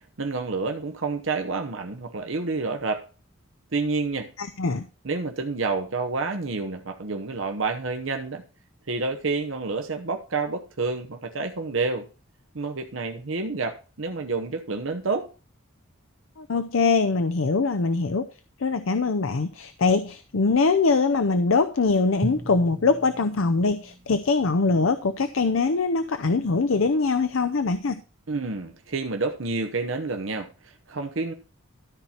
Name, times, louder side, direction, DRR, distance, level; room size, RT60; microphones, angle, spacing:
voice 1, 0.2-3.0 3.7-4.3 5.0-8.4 8.9-12.1 12.5-15.3 28.3-31.3, right 3 dB, 70° right, 0.9 m, -29 dB
voice 2, 4.4-4.9 16.4-18.3 18.6-28.0, left 4 dB, 75° left, 0.6 m, -23 dB
Drum, 22.2-25.2, right 1 dB, 25° right, 0.9 m, -37 dB
13.0 x 4.4 x 5.6 m
head